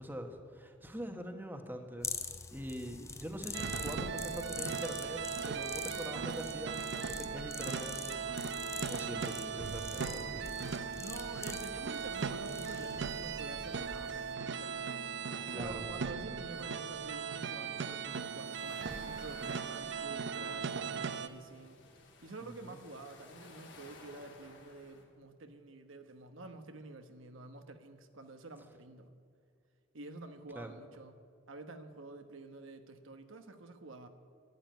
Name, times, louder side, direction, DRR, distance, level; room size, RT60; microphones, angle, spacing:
voice 1, 0.0-8.6 8.9-10.5 10.9-11.0 15.5-15.9 22.4-22.8 30.5-30.7, equal, 10° right, 5 dB, 1.2 m, -44 dB
sound 1, 2.0-14.3, left 4 dB, 15° left, 0.7 m, -45 dB
sound 2, 3.5-21.3, right 6 dB, 60° right, 0.7 m, -38 dB
voice 2, 10.9-14.9 15.5-21.8 22.2-29.1 29.9-31.2 31.5-34.1, right 2 dB, 85° right, 7 dB, 1.2 m, -49 dB
sound 3, 17.8-25.0, left 3 dB, 65° left, 3.0 m, -57 dB
12.0 x 11.5 x 9.2 m, 2.3 s
head